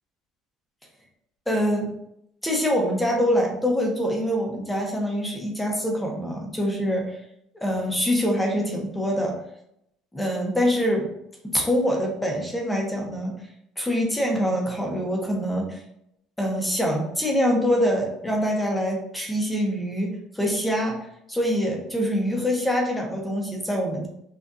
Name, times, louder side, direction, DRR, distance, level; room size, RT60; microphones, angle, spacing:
voice 1, 1.5-1.9 2.4-7.0 7.6-9.4 10.1-11.1 11.4-13.4 13.8-15.8 16.4-21.0 21.3-24.1, equal, 5° left, 0 dB, 0.8 m, -24 dB
6.1 x 2.5 x 2.6 m, 0.78 s
cardioid pair, 135°, 0 cm